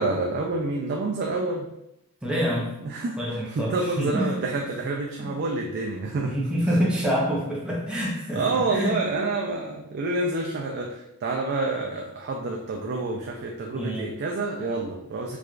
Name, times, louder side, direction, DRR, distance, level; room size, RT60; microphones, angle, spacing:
voice 1, 0.0-1.7 2.8-6.3 6.7-6.8 8.3-15.4, right 3 dB, 50° right, 0 dB, 0.3 m, -28 dB
voice 2, 2.2-2.7 3.2-4.3 5.2-5.3 6.2-8.9 13.7-14.1, equal, 5° right, -5 dB, 0.6 m, -26 dB
4.6 x 2.3 x 2.4 m, 0.83 s
head